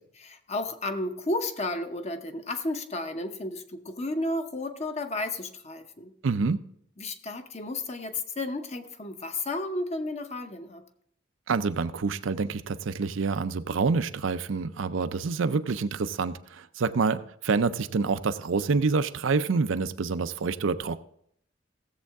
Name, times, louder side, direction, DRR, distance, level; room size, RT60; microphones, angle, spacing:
voice 1, 0.2-6.1 7.0-10.8, left 2 dB, 35° left, 7 dB, 0.8 m, -32 dB
voice 2, 6.2-6.6 11.5-21.0, right 4 dB, 85° right, 11 dB, 0.5 m, -27 dB
16.5 x 7.4 x 3.5 m, 0.70 s
head